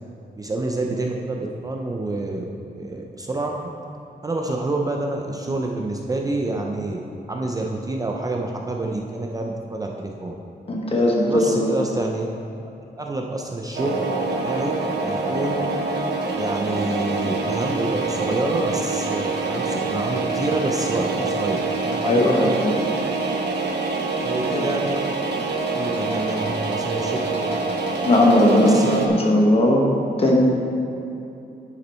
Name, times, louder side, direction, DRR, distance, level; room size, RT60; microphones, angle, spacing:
voice 1, 0.4-2.5 2.8-3.6 4.2-7.0 7.3-10.3 11.2-12.3 13.0-14.0 14.4-14.7 15.0-15.7 16.4-23.1 24.2-25.0 25.7-27.6 28.6-29.2, right 2 dB, 20° right, 1 dB, 0.5 m, -27 dB
voice 2, 10.7-11.7 22.0-22.7 24.5-24.7 28.0-30.3, left 1 dB, 35° left, -1 dB, 1.3 m, -18 dB
sound 1, 13.7-29.1, right 3 dB, 90° right, 0.9 m, -25 dB
10.5 x 5.8 x 4.4 m, 2.8 s
wide cardioid pair, 165°, 17 cm